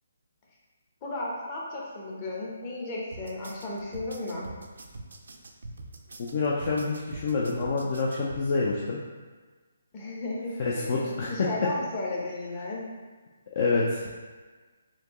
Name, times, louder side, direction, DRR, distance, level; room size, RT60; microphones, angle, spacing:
voice 1, 1.0-4.5 9.9-12.8, left 2 dB, 30° left, -4 dB, 0.9 m, -34 dB
sound 1, 3.1-8.4, right 2 dB, 70° right, 0.4 m, -44 dB
voice 2, 6.3-9.0 10.6-11.7 13.6-14.0, left 3 dB, 45° left, -5 dB, 0.5 m, -27 dB
4.2 x 2.8 x 3.0 m, 1.4 s
hypercardioid pair, 150°, 0 cm